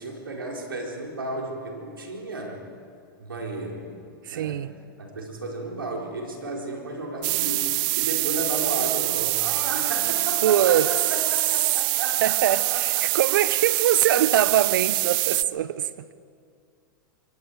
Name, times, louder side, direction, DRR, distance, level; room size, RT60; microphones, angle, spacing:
voice 1, 0.0-2.6 3.2-4.0 4.3-4.7 5.0-13.1, right 2 dB, 90° right, 4.3 m, -33 dB
voice 2, 4.3-4.7 10.4-10.9 12.2-16.1, right 11 dB, 70° right, 0.9 m, -23 dB
sound 1, 7.2-15.4, right 26 dB, 40° right, 0.4 m, -25 dB
24.5 x 24.0 x 4.8 m
hypercardioid pair, 105°, 12 cm